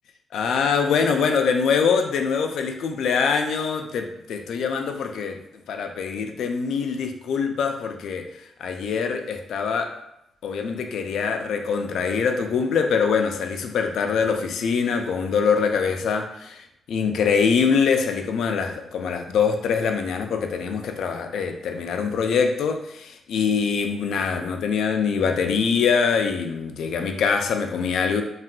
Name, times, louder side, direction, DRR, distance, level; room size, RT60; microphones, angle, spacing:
voice 1, 0.3-5.4 5.7-9.9 10.4-28.2, left 6 dB, 80° left, 5 dB, 0.3 m, -24 dB
3.5 x 2.4 x 2.2 m, 0.82 s
cardioid pair, 130°, 0 cm